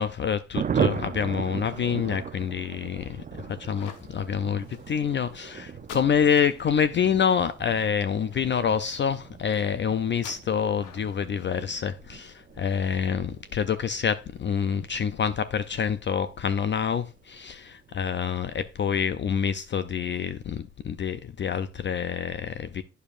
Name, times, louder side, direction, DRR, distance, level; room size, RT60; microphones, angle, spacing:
voice 1, 0.0-3.2 3.5-22.8, left 7 dB, 40° left, 0.4 m, -27 dB
Thunder, 0.5-16.7 16.9-17.0 17.3-17.5 17.7-18.1, right 7 dB, 30° right, 0.4 m, -37 dB
sound 1, 3.5-13.0, left 8 dB, 90° left, 1.1 m, -51 dB
8.9 x 6.8 x 2.4 m
cardioid pair, 90°, 30 cm